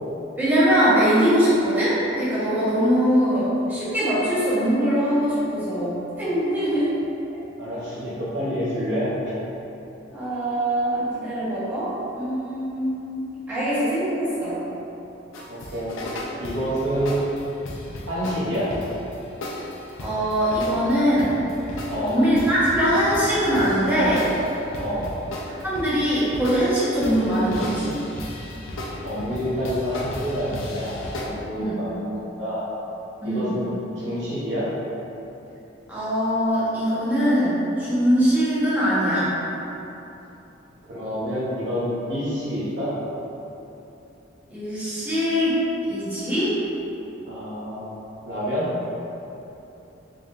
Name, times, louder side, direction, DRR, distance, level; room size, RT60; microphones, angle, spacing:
voice 1, 0.4-6.9 10.1-14.6 20.0-21.3 22.0-24.3 25.6-28.0 31.5-31.8 33.2-33.6 35.9-39.3 44.5-45.6 45.9-46.5, equal, 10° right, -12 dB, 1.0 m, -22 dB
voice 2, 7.6-9.3 15.5-16.0 16.4-17.2 18.1-18.7 21.9-22.2 24.8-25.1 29.0-32.6 33.2-34.7 40.9-42.9 47.3-47.9 48.2-48.7, equal, 65° right, -10 dB, 0.9 m, -28 dB
sound 1, 15.3-31.3, left 1 dB, 90° left, 0.5 m, -35 dB
3.7 x 3.4 x 2.6 m, 3.0 s
head